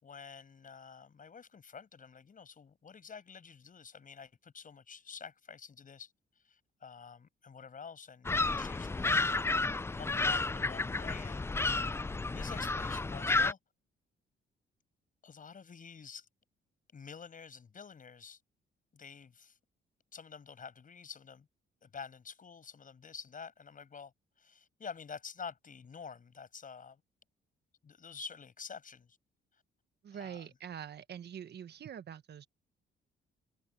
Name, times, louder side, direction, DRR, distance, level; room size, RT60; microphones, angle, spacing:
voice 1, 0.0-6.1 6.4-9.3 10.0-11.6 12.3-13.6 15.2-16.3 16.9-18.4 18.9-19.6 20.1-21.5 21.8-24.1 24.4-27.0 27.8-29.2 30.1-30.5, left 6 dB, 40° left, 7.1 m, -48 dB
sound 1, 8.2-13.5, left 3 dB, 15° left, 0.4 m, -31 dB
voice 2, 30.0-32.5, right 9 dB, 55° right, 1.4 m, -45 dB
cardioid pair, 90°, 20 cm